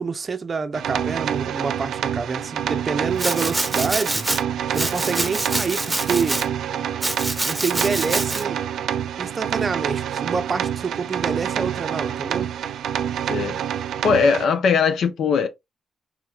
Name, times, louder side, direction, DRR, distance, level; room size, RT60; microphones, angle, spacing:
voice 1, 0.0-4.3 4.7-6.4 7.5-8.6 9.2-12.5, right 5 dB, 35° right, 0.5 m, -27 dB
sound 1, 0.7-14.4, right 9 dB, 90° right, 0.4 m, -27 dB
Domestic sounds home sounds, 3.2-4.4 4.7-6.5 7.0-8.4, right 2 dB, 10° right, 0.9 m, -26 dB
voice 2, 14.0-15.5, left 5 dB, 70° left, 0.7 m, -19 dB
4.6 x 3.5 x 2.4 m
cardioid pair, 125°, 0 cm